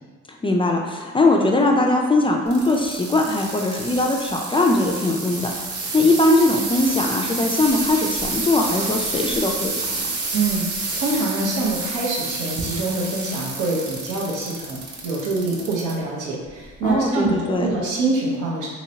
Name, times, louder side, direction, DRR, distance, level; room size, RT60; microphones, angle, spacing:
voice 1, 0.3-5.5 5.9-10.1 16.8-17.7, left 2 dB, 20° left, 1 dB, 0.3 m, -20 dB
sound 1, 2.5-15.9 16.5-16.9 17.6-17.7, right 3 dB, 50° right, 0.7 m, -29 dB
voice 2, 10.3-18.7, right 3 dB, 85° right, -5 dB, 0.9 m, -25 dB
3.0 x 2.9 x 2.7 m, 1.5 s
cardioid pair, 90°, 30 cm